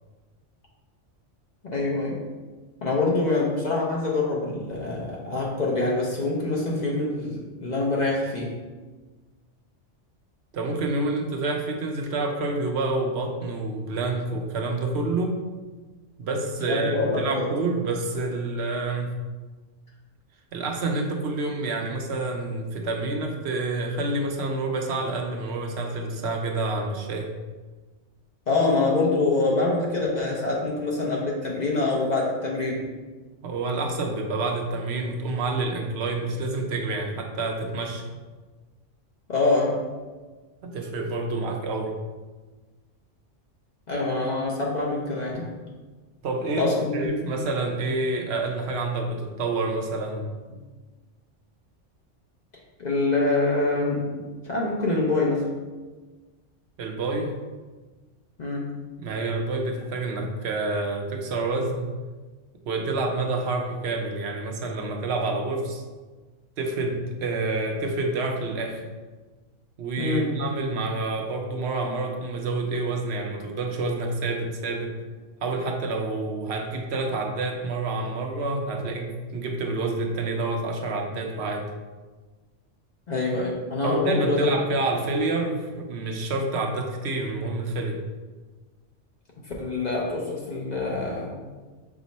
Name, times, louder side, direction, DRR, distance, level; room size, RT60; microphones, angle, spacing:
voice 1, 1.6-2.2 2.8-8.6 16.6-17.5 28.5-32.9 39.3-39.8 43.9-45.5 46.6-47.3 52.8-55.5 58.4-58.7 70.0-70.3 83.1-84.5 89.6-91.4, left 2 dB, 45° left, -3 dB, 0.6 m, -25 dB
voice 2, 10.5-15.3 16.2-19.2 20.5-27.3 33.4-38.0 40.6-41.9 46.2-50.2 56.8-57.3 59.0-61.9 62.7-65.8 66.6-68.8 69.8-74.9 75.4-81.7 83.8-88.0, right 2 dB, 65° right, 3 dB, 0.8 m, -28 dB
5.9 x 2.1 x 4.0 m, 1.3 s
omnidirectional pair, 1.2 m